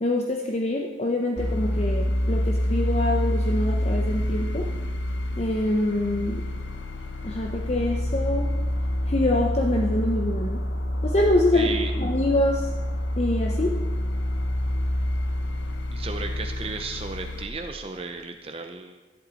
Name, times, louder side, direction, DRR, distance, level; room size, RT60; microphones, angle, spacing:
voice 1, 0.0-4.7 5.4-6.4 7.2-8.5 9.1-10.6 11.0-12.7 13.2-13.8, left 1 dB, 35° left, 2 dB, 0.8 m, -25 dB
sound 1, 1.4-17.5, left 1 dB, 75° left, 1.1 m, -27 dB
voice 2, 11.5-11.9 15.9-19.0, right 4 dB, 30° right, 5 dB, 0.6 m, -34 dB
14.0 x 11.0 x 4.1 m, 1.2 s
head